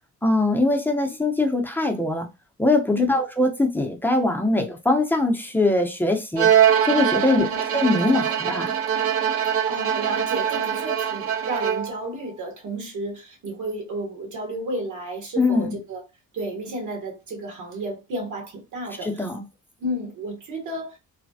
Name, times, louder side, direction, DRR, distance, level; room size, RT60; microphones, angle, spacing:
voice 1, 0.2-2.3 2.6-6.5 6.8-7.5 7.7-8.8 15.4-15.7 19.0-19.4, left 2 dB, 5° left, 0.7 m, -22 dB
Bowed string instrument, 6.4-12.1, right 9 dB, 50° right, 0.5 m, -22 dB
voice 2, 9.7-16.0 16.3-19.3 19.8-21.0, right 1 dB, 75° right, 1.5 m, -32 dB
3.2 x 2.2 x 2.6 m
cardioid pair, 90°, 30 cm